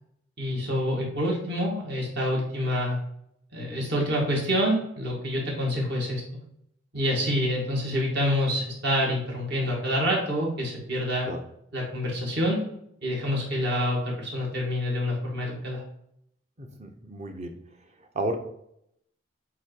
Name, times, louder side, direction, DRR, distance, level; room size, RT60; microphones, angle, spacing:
voice 1, 0.4-3.0 3.5-6.2 6.9-11.3 11.7-12.6 13.0-15.8, equal, 55° right, -3 dB, 2.3 m, -27 dB
voice 2, 16.6-17.5 18.1-18.4, right 1 dB, 35° right, 5 dB, 0.9 m, -33 dB
8.2 x 3.0 x 4.7 m, 0.75 s
head